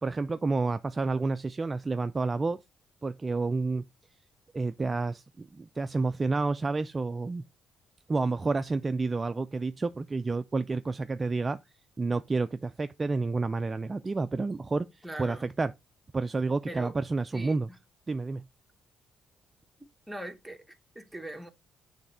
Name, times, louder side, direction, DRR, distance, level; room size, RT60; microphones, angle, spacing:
voice 1, 0.0-2.6 3.0-3.8 4.5-7.4 8.1-11.6 12.0-15.7 16.1-17.7 18.1-18.4, right 3 dB, 25° right, 0.3 m, -30 dB
voice 2, 15.0-15.5 16.7-16.9 17.3-17.8 20.1-21.5, right 1 dB, 5° right, 1.1 m, -41 dB
7.2 x 3.3 x 4.2 m
cardioid pair, 90°, 0 cm